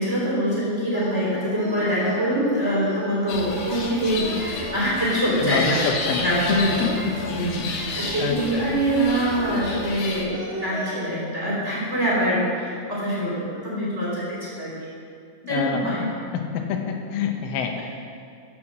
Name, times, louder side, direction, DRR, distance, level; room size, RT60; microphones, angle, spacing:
voice 1, 0.0-5.8 6.2-7.0 7.3-7.6 7.9-14.7 15.5-16.0, right 1 dB, 15° right, -6 dB, 2.9 m, -24 dB
sound 1, 0.9-11.1, left 1 dB, 15° left, 1.6 m, -37 dB
sound 2, 3.3-10.2, left 3 dB, 65° left, 2.0 m, -32 dB
voice 2, 5.4-6.3 6.8-7.1 7.6-7.7 8.2-8.7 15.4-15.9 16.3-17.8, left 6 dB, 85° left, 3 dB, 3.6 m, -27 dB
14.5 x 7.8 x 7.4 m, 2.3 s
omnidirectional pair, 5.5 m